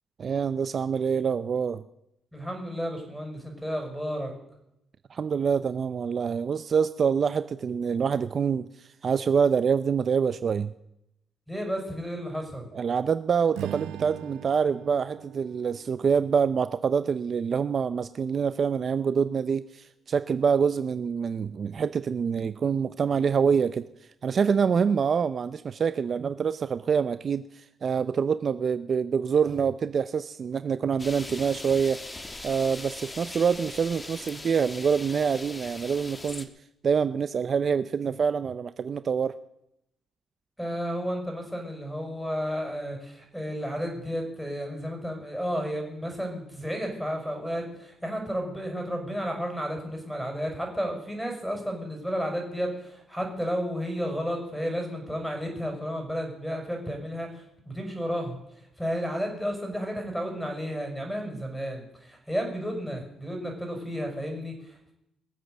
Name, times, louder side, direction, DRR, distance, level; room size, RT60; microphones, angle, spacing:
voice 1, 0.2-1.8 5.1-10.7 12.7-23.9 24.2-32.0 32.4-36.5 36.8-39.3, right 6 dB, 45° right, 13 dB, 0.5 m, -26 dB
voice 2, 2.3-4.3 11.5-12.7 40.6-64.9, equal, ahead, 3 dB, 6.0 m, -32 dB
Strum, 13.5-17.9, right 13 dB, 85° right, 0.7 m, -43 dB
sound 1, 31.0-36.5, left 2 dB, 20° left, 1.5 m, -41 dB
21.5 x 7.8 x 8.0 m, 0.83 s
cardioid pair, 90°, 0 cm